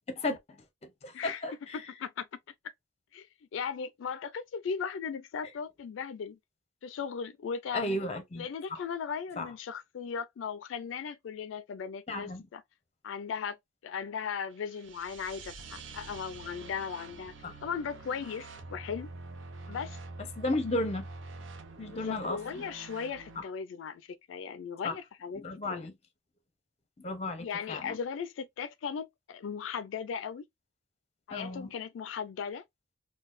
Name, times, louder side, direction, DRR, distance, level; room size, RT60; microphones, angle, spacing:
voice 1, 0.1-0.4 1.0-1.5 7.7-8.8 9.4-9.5 12.1-12.4 17.4-17.5 20.4-21.1 21.8-22.4 23.4-23.5 24.8-24.9 25.4-25.9 27.0-28.0 31.3-31.7, left 2 dB, 35° left, 0.7 m, -34 dB
voice 2, 1.1-1.4 1.7-2.3 3.1-3.3 3.5-6.4 6.8-8.0 8.3-12.6 13.0-13.6 13.8-17.3 17.6-19.1 19.7-20.0 21.9-25.9 27.4-30.4 31.3-32.6, left 6 dB, 80° left, 0.3 m, -37 dB
sound 1, 14.5-23.4, right 3 dB, 85° right, 0.6 m, -46 dB
3.9 x 2.2 x 2.5 m
head